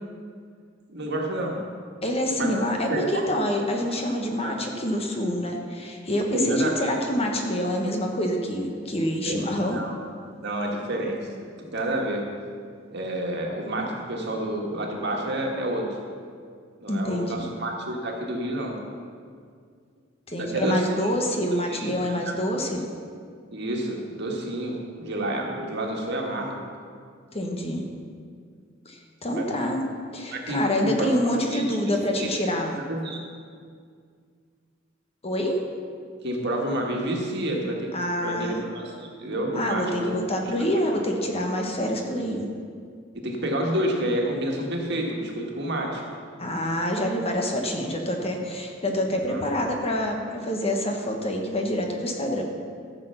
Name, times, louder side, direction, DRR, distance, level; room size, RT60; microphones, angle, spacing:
voice 1, 0.9-1.6 2.3-2.5 2.9-3.3 4.4-4.6 6.3-6.9 9.3-9.9 10.4-11.2 11.6-12.2 12.9-15.9 16.8-18.8 20.3-20.8 21.7-22.0 23.5-26.7 29.3-29.7 30.3-31.1 31.5-32.3 32.8-33.2 36.2-37.9 38.2-40.2 41.8-41.9 43.1-46.0 49.3-49.4, right 1 dB, 60° right, 0 dB, 1.8 m, -29 dB
voice 2, 2.0-9.8 16.9-17.5 20.3-22.8 27.3-27.8 28.8-29.8 30.1-32.8 35.2-35.6 37.9-38.6 39.5-42.5 46.4-52.4, equal, 30° left, 2 dB, 1.3 m, -26 dB
14.0 x 6.9 x 5.8 m, 2.1 s
head